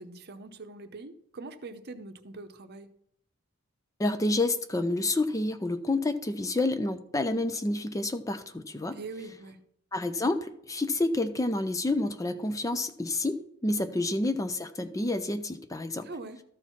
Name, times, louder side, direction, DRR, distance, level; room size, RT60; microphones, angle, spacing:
voice 1, 0.0-2.9 8.9-9.6 13.9-14.0 16.0-16.4, right 3 dB, 50° right, 9 dB, 0.8 m, -43 dB
voice 2, 4.0-9.0 9.9-16.1, left 2 dB, 15° left, 10 dB, 0.4 m, -29 dB
13.0 x 4.5 x 5.7 m, 0.74 s
head